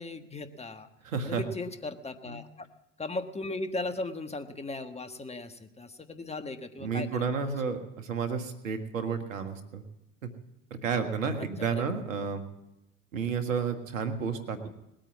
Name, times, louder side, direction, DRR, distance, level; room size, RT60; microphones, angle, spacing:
voice 1, 0.0-0.9 1.2-2.7 3.0-7.3 11.6-12.0, left 2 dB, 15° left, 8 dB, 1.4 m, -37 dB
voice 2, 1.0-1.4 2.2-2.4 6.8-9.8 10.2-10.3 10.8-12.4 13.1-14.7, right 5 dB, 85° right, 7 dB, 1.7 m, -31 dB
20.0 x 8.9 x 7.3 m, 0.91 s
hypercardioid pair, 70°, 38 cm